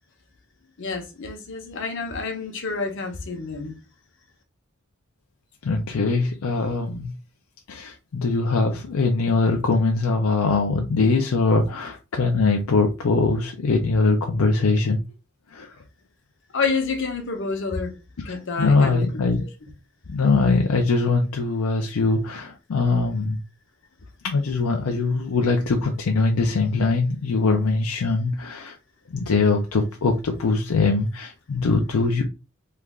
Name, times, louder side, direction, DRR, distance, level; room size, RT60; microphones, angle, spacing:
voice 1, 0.8-3.8 16.5-17.9 18.2-19.0, left 4 dB, 60° left, 0.8 m, -28 dB
voice 2, 5.6-7.1 7.7-15.0 15.5-15.8 18.3-19.4 20.1-23.4 24.2-28.8 29.1-32.2, left 3 dB, 80° left, 0.5 m, -22 dB
3.2 x 2.4 x 3.5 m
head